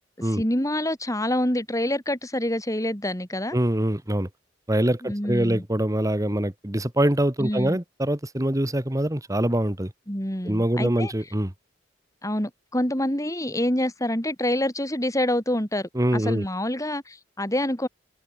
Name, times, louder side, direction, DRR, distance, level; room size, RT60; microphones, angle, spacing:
voice 1, 0.2-3.6 5.0-5.6 7.4-7.8 10.1-11.1 12.2-17.9, left 1 dB, 20° left, 6.5 m, -26 dB
voice 2, 3.5-4.3 4.7-9.9 10.4-11.5 15.9-16.4, right 1 dB, 20° right, 1.6 m, -24 dB
open air
head